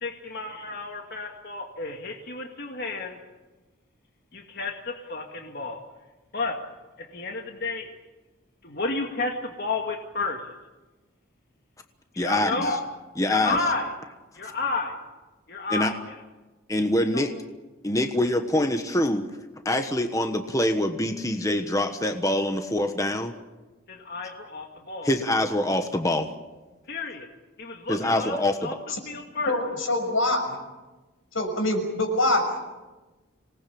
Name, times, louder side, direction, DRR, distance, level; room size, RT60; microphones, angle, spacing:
voice 1, 0.0-3.2 4.3-5.8 6.3-6.6 7.1-7.9 8.6-10.4 12.1-12.8 13.3-13.9 14.4-15.0 15.5-16.1 17.1-17.3 23.9-25.1 26.9-27.3 27.6-28.3 28.6-28.7 29.1-29.6, left 3 dB, 50° left, 2 dB, 2.2 m, -31 dB
voice 2, 12.2-12.8 13.2-13.6 15.7-15.9 16.7-17.3 17.8-19.2 19.6-23.3 25.0-26.3 27.9-28.8, left 1 dB, 15° left, 6 dB, 1.2 m, -25 dB
voice 3, 29.5-30.6 31.3-32.6, left 1 dB, 85° left, 5 dB, 6.1 m, -24 dB
26.0 x 19.5 x 8.7 m, 1.2 s
head